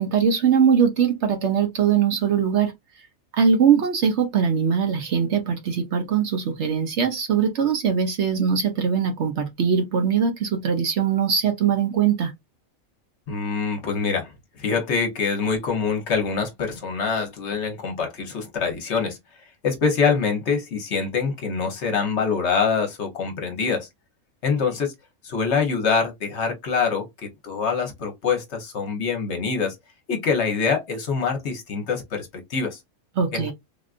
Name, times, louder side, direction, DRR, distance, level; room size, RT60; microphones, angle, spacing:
voice 1, 0.0-2.7 3.3-12.3 33.2-33.5, right 7 dB, 60° right, 0.9 m, -21 dB
voice 2, 13.3-14.3 14.6-19.2 19.6-23.9 24.4-24.9 25.2-29.8 30.1-32.8 33.3-33.5, left 5 dB, 55° left, 1.0 m, -25 dB
3.5 x 2.4 x 2.3 m
omnidirectional pair, 1.5 m